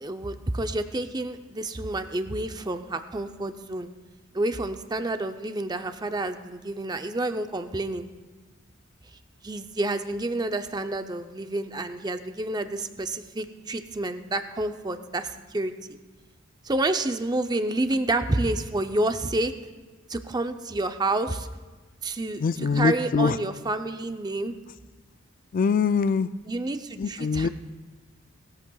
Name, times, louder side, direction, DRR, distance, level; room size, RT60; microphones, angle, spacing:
voice 1, 0.0-3.9 4.3-8.1 9.4-15.7 16.6-19.5 20.1-21.5 22.0-24.5 26.5-27.5, right 2 dB, 20° right, 8 dB, 0.6 m, -29 dB
voice 2, 22.4-23.4 25.5-26.3 27.0-27.5, left 5 dB, 40° left, 14 dB, 0.3 m, -23 dB
19.5 x 13.5 x 2.3 m, 1.3 s
head